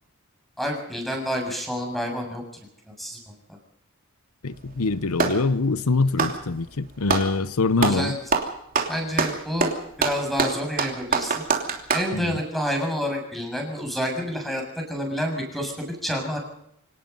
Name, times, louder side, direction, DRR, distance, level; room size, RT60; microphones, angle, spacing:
voice 1, 0.6-2.4 3.0-3.2 6.2-6.3 7.8-8.2 8.9-9.7 10.0-11.4 11.9-16.4, equal, ahead, 6.9 m, -28 dB
voice 2, 4.4-8.2 12.1-12.4, left 3 dB, 90° left, 0.8 m, -24 dB
Clapping, 4.5-5.5 6.1-7.3 7.8-8.0 8.3-12.1, right 4 dB, 40° right, 3.0 m, -25 dB
26.0 x 18.5 x 5.5 m
head